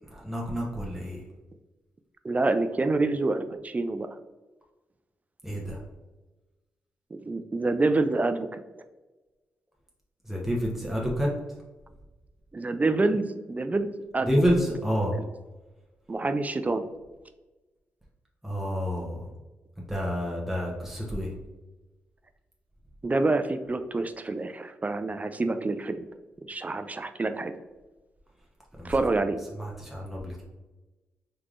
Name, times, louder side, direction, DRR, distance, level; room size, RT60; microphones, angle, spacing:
voice 1, 0.1-1.2 5.4-5.8 10.2-11.3 14.3-15.1 18.4-19.2 19.9-21.3 28.8-28.9 29.5-30.4, equal, 5° right, -3 dB, 0.9 m, -28 dB
voice 2, 2.2-4.2 7.1-8.6 12.5-14.3 16.1-16.9 23.0-26.1 26.4-27.5 28.8-29.4, right 3 dB, 30° right, 9 dB, 0.3 m, -27 dB
3.3 x 3.2 x 2.5 m, 1.1 s
supercardioid pair, 45°, 5 cm